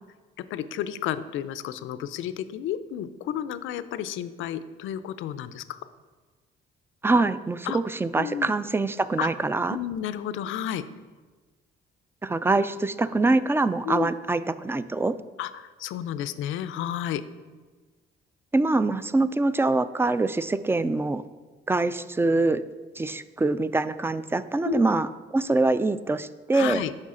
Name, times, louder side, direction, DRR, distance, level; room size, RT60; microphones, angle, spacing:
voice 1, 0.4-5.8 7.7-7.8 8.2-8.6 9.2-9.3 9.7-10.8 13.8-14.1 15.4-17.2 24.6-24.9 26.5-26.9, left 10 dB, 85° left, 13 dB, 0.5 m, -31 dB
voice 2, 7.0-9.8 12.2-15.1 18.5-21.2 21.7-22.6 23.0-26.8, right 2 dB, 10° right, 14 dB, 0.3 m, -24 dB
9.7 x 6.4 x 3.7 m, 1.3 s
cardioid pair, 90°, 20 cm